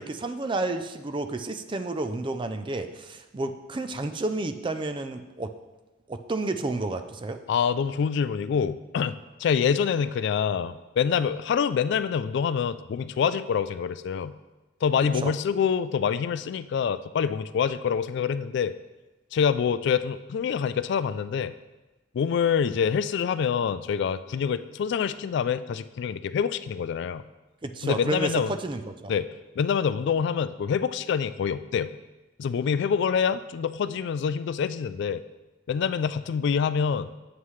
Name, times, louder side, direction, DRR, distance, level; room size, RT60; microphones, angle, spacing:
voice 1, 0.0-5.5 6.1-7.4 15.1-15.3 27.6-29.1, right 2 dB, 25° right, 8 dB, 0.4 m, -31 dB
voice 2, 7.5-9.1 9.4-14.3 14.8-18.7 19.3-21.5 22.1-27.2 27.8-28.5 29.1-29.3 29.6-31.9 32.4-35.2 35.7-37.1, left 7 dB, 65° left, 14 dB, 0.3 m, -26 dB
8.3 x 7.5 x 3.2 m, 1.1 s
head